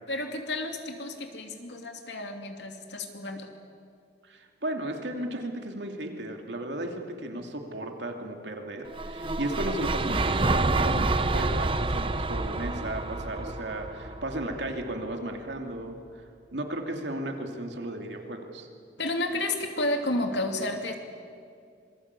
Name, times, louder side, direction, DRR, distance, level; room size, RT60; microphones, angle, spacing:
voice 1, 0.1-3.5 19.0-20.9, left 1 dB, 90° left, 4 dB, 2.6 m, -31 dB
voice 2, 4.3-16.0 16.5-18.7, right 1 dB, 90° right, 3 dB, 2.7 m, -35 dB
sound 1, 8.9-15.1, right 2 dB, 30° right, 0.8 m, -28 dB
26.0 x 20.5 x 8.4 m, 2.3 s
head